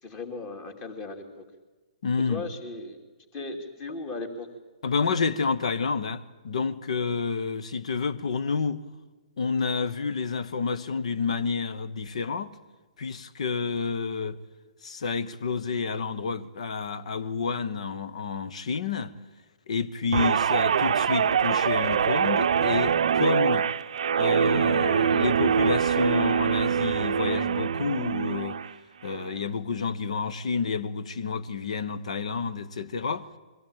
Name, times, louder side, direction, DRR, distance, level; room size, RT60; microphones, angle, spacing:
voice 1, 0.0-1.4 2.3-3.0 3.3-4.5, left 3 dB, 30° left, 2.7 m, -37 dB
voice 2, 2.0-2.5 4.8-8.8 9.4-12.5 13.0-14.4 14.8-19.1 19.7-23.7 24.2-28.6 29.0-33.3, left 5 dB, 65° left, 1.1 m, -29 dB
Guitar, 20.1-28.7 29.1-29.4, right 7 dB, 60° right, 0.6 m, -24 dB
22.0 x 15.5 x 8.9 m
figure-of-eight pair, 125°, 4 cm